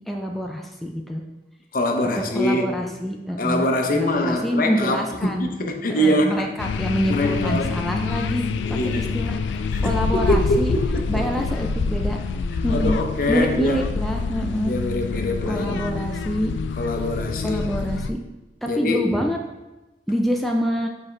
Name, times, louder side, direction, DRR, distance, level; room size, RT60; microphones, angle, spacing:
voice 1, 0.1-1.2 2.3-5.5 5.9-8.4 8.7-10.7 11.1-12.2 12.6-13.0 13.3-14.7 15.5-16.5 17.4-18.2 18.6-19.4 20.1-20.9, equal, ahead, 1 dB, 0.3 m, -26 dB
voice 2, 1.7-2.7 3.4-6.5 7.1-7.8 8.6-9.1 9.7-11.2 12.7-13.8 14.7-15.8 16.8-17.6 18.7-19.1, left 1 dB, 50° left, 4 dB, 0.7 m, -24 dB
sound 1, 6.6-18.1, left 4 dB, 85° left, 0.3 m, -26 dB
6.9 x 4.2 x 3.2 m, 1.0 s
head